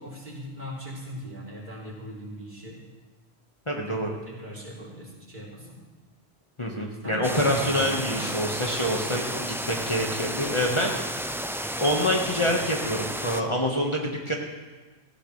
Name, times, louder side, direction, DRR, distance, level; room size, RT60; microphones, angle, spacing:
voice 1, 0.0-2.8 3.7-5.8 7.0-8.3, equal, 45° right, -4 dB, 3.7 m, -39 dB
voice 2, 3.7-4.1 6.6-11.3 11.8-14.3, equal, 30° left, -1 dB, 1.5 m, -26 dB
sound 1, 7.2-13.4, equal, 5° right, 0.4 m, -32 dB
18.5 x 16.0 x 3.3 m, 1.3 s
omnidirectional pair, 1.1 m